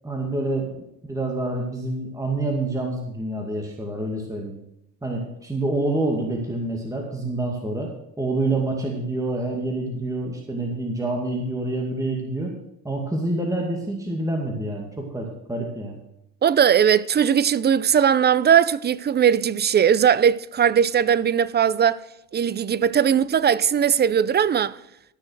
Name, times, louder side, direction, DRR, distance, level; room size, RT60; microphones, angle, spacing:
voice 1, 0.0-4.6 5.0-7.9 8.2-12.5 12.8-16.0, right 2 dB, 10° right, 2.3 m, -27 dB
voice 2, 16.4-22.0 22.3-24.8, right 8 dB, 25° right, 0.5 m, -19 dB
13.0 x 6.3 x 6.5 m
hypercardioid pair, 75°, 43 cm